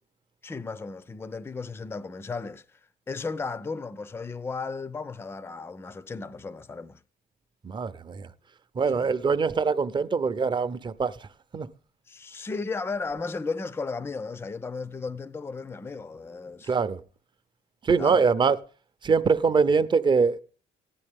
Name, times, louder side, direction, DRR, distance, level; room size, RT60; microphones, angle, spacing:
voice 1, 0.4-2.8 3.1-7.0 8.9-9.1 12.1-16.7 18.0-18.5, left 4 dB, 15° left, 0.5 m, -35 dB
voice 2, 7.6-8.3 8.8-11.1 11.5-11.7 16.7-17.0 17.8-18.6 19.0-20.4, right 5 dB, 25° right, 0.7 m, -23 dB
15.0 x 9.9 x 3.5 m
cardioid pair, 110°, 17 cm